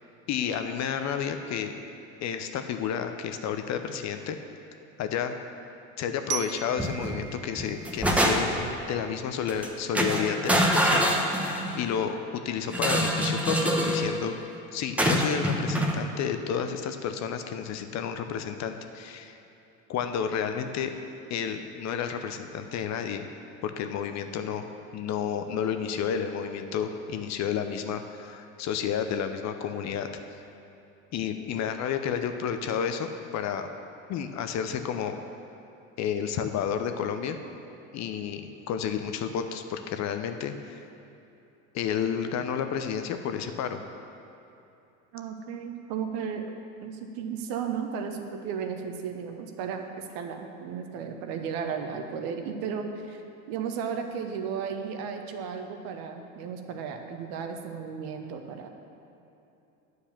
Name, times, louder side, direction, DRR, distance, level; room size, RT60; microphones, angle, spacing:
voice 1, 0.3-1.7 2.2-4.4 5.0-5.3 6.0-8.5 8.9-12.2 12.4-14.4 14.7-19.4 19.9-20.9 21.3-23.3 23.6-24.7 24.9-30.4 31.1-33.7 34.1-35.2 36.0-37.4 37.9-40.8 41.7-43.8, left 8 dB, 40° left, 7 dB, 0.7 m, -31 dB
Glockenspiel, 6.3-9.2, right 10 dB, 30° right, 0.4 m, -39 dB
sound 1, 6.8-7.2 7.6-8.7 9.5-9.7 9.9-11.8 12.7-14.1 15.0-16.0, equal, 5° right, 0.9 m, -25 dB
voice 2, 45.1-53.2 53.5-58.7, right 6 dB, 60° right, 5 dB, 1.0 m, -34 dB
9.1 x 4.8 x 7.2 m, 2.9 s
hypercardioid pair, 85°, 41 cm